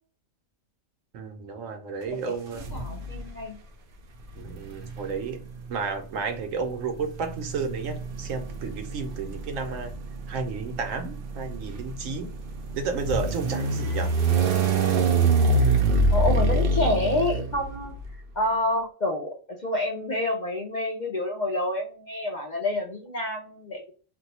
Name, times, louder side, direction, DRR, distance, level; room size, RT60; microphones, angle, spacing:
voice 1, 1.1-2.8 4.4-5.4 5.7-9.9 10.3-12.3 12.7-14.1, right 5 dB, 90° right, 1.1 m, -32 dB
voice 2, 2.3-3.6 16.1-17.9 18.4-23.9, left 1 dB, 55° left, 0.5 m, -28 dB
sound 1, 2.6-3.3 4.3-18.0, right 3 dB, 60° right, 0.6 m, -26 dB
2.6 x 2.2 x 4.0 m
omnidirectional pair, 1.3 m